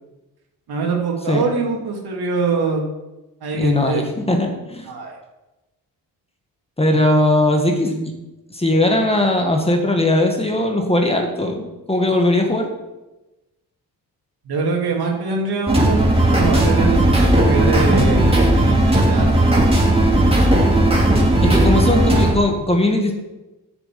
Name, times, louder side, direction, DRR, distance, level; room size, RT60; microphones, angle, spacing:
voice 1, 0.7-2.8 3.4-4.0 4.9-5.2 6.9-7.0 14.4-19.8 21.2-21.7, right 4 dB, 70° right, 0 dB, 2.7 m, -24 dB
voice 2, 3.5-4.9 6.8-8.1 8.5-12.7 21.4-23.1, left 1 dB, 15° left, 3 dB, 1.7 m, -19 dB
sound 1, 15.7-22.3, right 1 dB, 15° right, 2.7 m, -15 dB
8.2 x 7.1 x 7.6 m, 1.0 s
cardioid pair, 105°, 39 cm